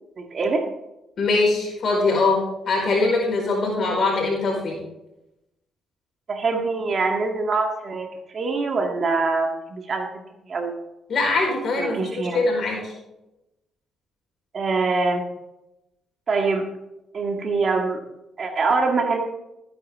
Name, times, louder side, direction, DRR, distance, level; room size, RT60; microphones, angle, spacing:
voice 1, 0.2-0.7 6.3-10.8 11.8-12.4 14.5-15.3 16.3-16.7 17.1-18.0 18.4-19.2, right 3 dB, 45° right, 3 dB, 1.8 m, -24 dB
voice 2, 1.2-4.8 11.1-12.0 12.3-12.9, left 3 dB, 55° left, -2 dB, 4.7 m, -22 dB
15.0 x 9.6 x 3.6 m, 0.92 s
cardioid pair, 90°, 0 cm